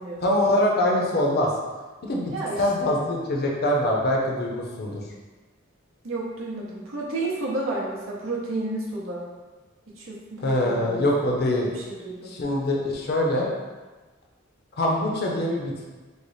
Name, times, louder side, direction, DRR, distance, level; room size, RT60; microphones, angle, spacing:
voice 1, 0.2-1.5 2.1-5.0 10.4-11.7 12.3-13.5 14.8-15.8, left 1 dB, 50° left, -2 dB, 0.6 m, -24 dB
voice 2, 2.3-2.9 6.0-9.2 9.9-11.1 11.6-12.3, right 2 dB, 80° right, -4 dB, 0.8 m, -31 dB
3.2 x 2.0 x 4.0 m, 1.3 s
head